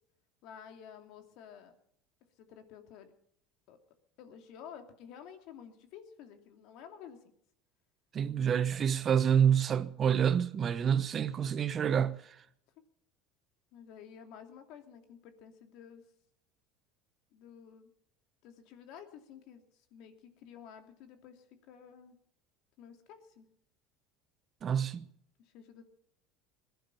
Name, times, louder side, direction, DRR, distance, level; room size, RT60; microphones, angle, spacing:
voice 1, 0.4-1.8 2.4-3.1 3.7-3.8 4.2-7.2 12.8-12.9 13.7-16.0 17.3-17.9 18.4-22.2 22.8-23.5 25.4-25.9, left 8 dB, 65° left, 2.7 m, -52 dB
voice 2, 8.1-12.4 24.6-25.1, right 8 dB, 35° right, 1.0 m, -28 dB
20.0 x 12.0 x 5.7 m
supercardioid pair, 120°, 0 cm